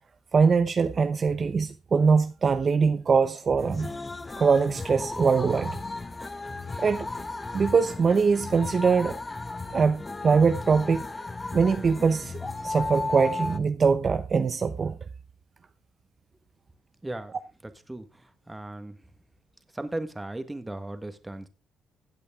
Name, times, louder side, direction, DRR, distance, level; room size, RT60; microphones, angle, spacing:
voice 1, 0.3-3.9 4.4-5.8 6.8-7.1 7.5-9.2 9.7-11.0 11.5-15.0, right 5 dB, 40° right, 0.7 m, -22 dB
sound 1, 3.6-13.6, left 3 dB, 20° left, 0.9 m, -35 dB
voice 2, 17.0-17.3 17.6-18.1 18.5-19.0 19.7-21.5, right 2 dB, 10° right, 1.5 m, -36 dB
15.5 x 8.4 x 3.6 m
cardioid pair, 90°, 0 cm